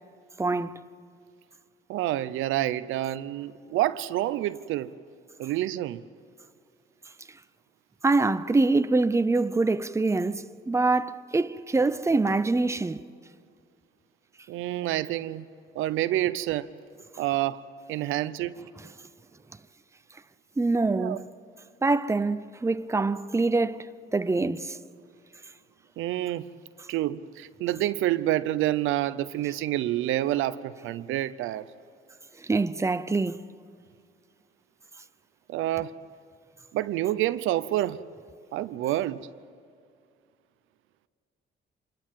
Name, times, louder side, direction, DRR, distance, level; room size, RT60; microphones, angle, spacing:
voice 1, 0.4-0.8 8.0-13.0 20.6-21.3 21.8-23.9 24.1-24.8 32.5-33.5, right 3 dB, 15° right, 0.7 m, -25 dB
voice 2, 1.9-4.9 5.4-6.0 14.5-15.5 15.7-16.7 17.2-17.6 17.9-18.5 20.8-21.2 26.0-26.5 26.9-31.7 35.5-35.9 36.7-38.0 38.5-39.2, right 14 dB, 90° right, 0.7 m, -28 dB
26.0 x 20.5 x 7.5 m
cardioid pair, 90°, 20 cm